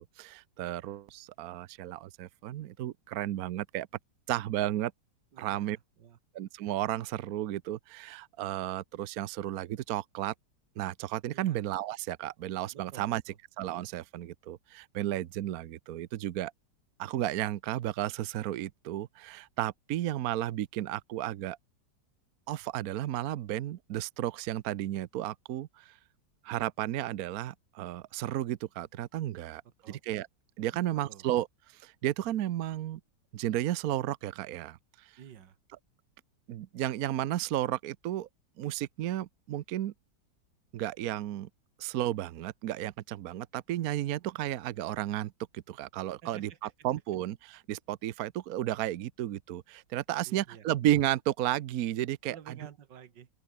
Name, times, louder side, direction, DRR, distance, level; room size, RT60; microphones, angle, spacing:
voice 1, 0.0-3.9 4.3-4.9 5.4-5.8 6.3-10.3 10.8-13.2 13.6-16.5 17.0-21.6 22.5-25.9 26.4-29.6 29.9-30.3 30.6-31.5 31.7-33.0 33.3-35.1 36.5-38.3 38.6-39.9 40.7-41.5 41.8-52.5, right 13 dB, 65° right, 1.1 m, -33 dB
voice 2, 5.3-6.2 11.3-11.6 12.7-13.4 29.8-30.0 30.7-31.2 35.2-35.6 46.2-46.7 50.3-50.7 52.3-53.3, right 9 dB, 85° right, 2.0 m, -51 dB
open air
omnidirectional pair, 1.9 m